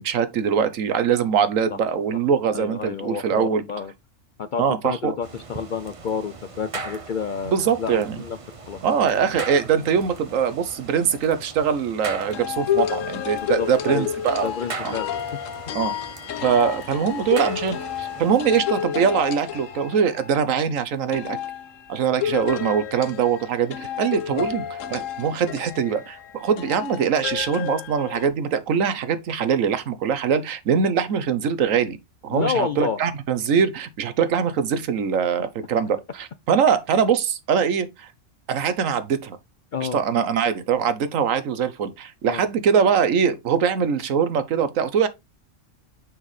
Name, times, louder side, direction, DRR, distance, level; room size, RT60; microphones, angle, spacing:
voice 1, 0.0-3.6 4.6-5.1 7.5-8.2 8.8-14.5 14.8-14.9 15.7-15.9 16.4-21.4 21.9-32.0 32.2-38.1 38.5-39.4 39.8-45.1, right 7 dB, 90° right, 1.2 m, -22 dB
voice 2, 2.5-3.9 4.4-8.4 8.7-8.8 13.3-14.1 14.4-15.1 24.3-24.4 32.3-33.0 39.7-40.0 42.2-42.4, left 6 dB, 60° left, 0.5 m, -29 dB
sound 1, 5.2-18.6, right 4 dB, 30° right, 0.7 m, -39 dB
sound 2, 12.3-20.5 21.1-28.3, left 9 dB, 80° left, 1.1 m, -30 dB
6.3 x 5.8 x 3.1 m
omnidirectional pair, 1.3 m